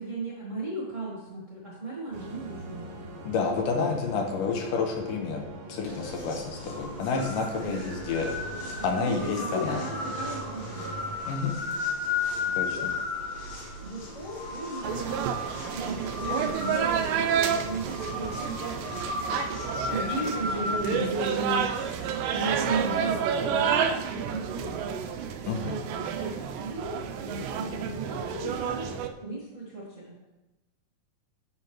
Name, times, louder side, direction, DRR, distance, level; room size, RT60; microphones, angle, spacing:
voice 1, 0.0-2.9 7.6-7.8 8.8-11.0 12.4-12.8 13.8-15.4 15.7-19.0 19.9-25.0 25.9-28.9 29.2-30.2, right 2 dB, 30° right, -5 dB, 1.6 m, -36 dB
sound 1, 2.1-11.2, right 2 dB, 65° right, 1.1 m, -42 dB
voice 2, 3.2-5.4 5.7-8.3 8.8-9.8 11.3-11.6 12.5-12.9 25.5-25.9, left 4 dB, 80° left, 2 dB, 2.5 m, -29 dB
sound 2, 5.8-22.2, left 3 dB, 55° left, 3.0 m, -35 dB
sound 3, 14.8-29.1, right 7 dB, 90° right, 2.3 m, -30 dB
10.5 x 7.1 x 3.2 m, 1.0 s
omnidirectional pair, 3.8 m